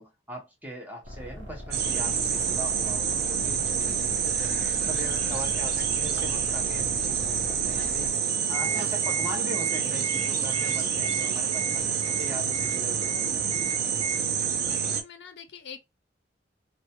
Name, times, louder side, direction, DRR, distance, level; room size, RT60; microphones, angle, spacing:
voice 1, 0.0-4.6 4.9-8.1 8.5-11.9 12.2-13.7, equal, 10° right, 0.7 m, -40 dB
sound 1, 1.0-8.1, equal, 85° right, 0.8 m, -41 dB
sound 2, 1.7-15.0, right 7 dB, 60° right, 0.4 m, -27 dB
sound 3, 8.3-14.2, right 5 dB, 25° left, 0.8 m, -38 dB
voice 2, 14.6-15.8, left 7 dB, 65° left, 0.4 m, -45 dB
2.2 x 2.1 x 2.8 m
head